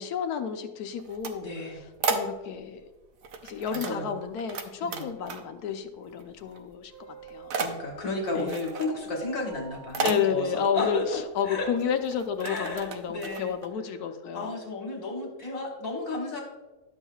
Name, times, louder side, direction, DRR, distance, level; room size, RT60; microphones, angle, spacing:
voice 1, 0.0-1.5 2.0-2.9 3.4-6.9 7.3-7.5 8.3-8.5 10.0-14.6, left 7 dB, 75° left, 7 dB, 1.2 m, -31 dB
sound 1, 0.9-2.8 3.2-4.6 4.9-5.7 6.0-6.7 7.0-13.7, right 4 dB, 85° right, 1.4 m, -34 dB
voice 2, 1.4-1.8 3.7-4.2 4.8-5.0 7.5-11.7 12.4-13.5 14.3-16.4, left 2 dB, 60° left, 0 dB, 1.7 m, -33 dB
sound 2, 6.9-12.0, right 8 dB, 25° right, 2.8 m, -50 dB
11.5 x 7.2 x 2.3 m, 1.2 s
omnidirectional pair, 1.7 m